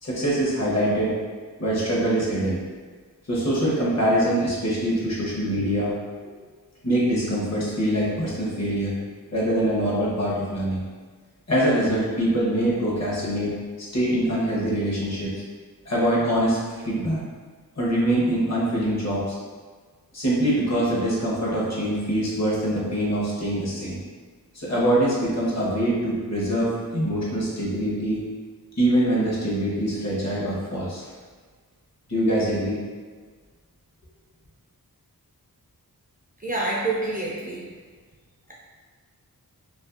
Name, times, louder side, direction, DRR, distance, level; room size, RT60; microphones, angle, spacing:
voice 1, 0.0-1.1 1.6-2.6 3.3-5.9 6.2-6.3 6.8-8.9 9.3-10.8 11.5-15.3 15.9-16.6 16.8-17.2 17.8-19.4 20.1-24.0 24.5-28.2 28.8-31.0 32.1-32.8, right 1 dB, 45° left, -6 dB, 0.8 m, -24 dB
voice 2, 36.4-37.6, right 2 dB, 25° right, -5 dB, 0.3 m, -27 dB
2.6 x 2.5 x 2.4 m, 1.5 s
wide cardioid pair, 100°, 36 cm